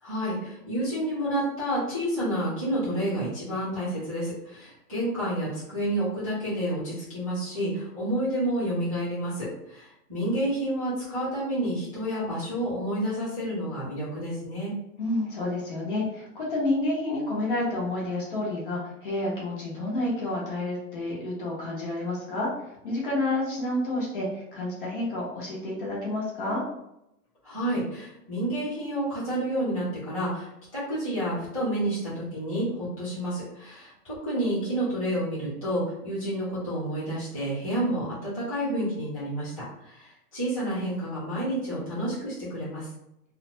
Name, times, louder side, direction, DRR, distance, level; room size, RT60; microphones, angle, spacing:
voice 1, 0.0-14.7 27.4-42.9, right 1 dB, 25° right, -11 dB, 0.4 m, -29 dB
voice 2, 15.0-26.6, left 2 dB, 35° left, -5 dB, 0.7 m, -29 dB
2.5 x 2.1 x 2.6 m, 0.85 s
hypercardioid pair, 175°, 47 cm